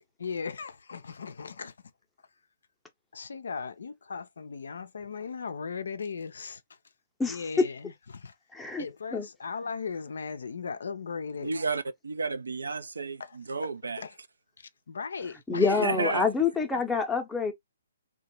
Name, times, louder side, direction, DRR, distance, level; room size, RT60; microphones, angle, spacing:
voice 1, 0.0-1.7 3.1-6.8 7.3-8.3 8.8-11.5 13.2-13.7 14.0-14.2 14.6-16.0 16.7-16.8, left 5 dB, 60° left, 0.4 m, -38 dB
voice 2, 7.2-7.6 8.5-8.8 9.1-9.3 15.5-17.5, left 4 dB, 5° left, 0.6 m, -26 dB
voice 3, 11.4-14.0 15.8-16.3, right 4 dB, 70° right, 0.4 m, -32 dB
2.8 x 2.2 x 2.9 m
figure-of-eight pair, 130°, 0 cm